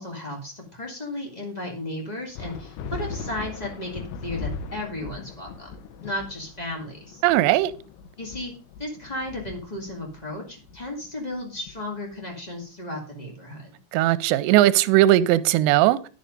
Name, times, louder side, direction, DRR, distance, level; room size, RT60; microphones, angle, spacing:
voice 1, 0.0-5.7 6.0-7.2 8.2-8.5 8.8-13.7, left 1 dB, 65° left, 0.4 m, -34 dB
sound 1, 2.4-12.3, left 5 dB, 85° left, 3.2 m, -38 dB
voice 2, 7.2-7.7 13.9-16.1, right 15 dB, 85° right, 2.9 m, -18 dB
11.5 x 6.7 x 5.2 m
omnidirectional pair, 5.0 m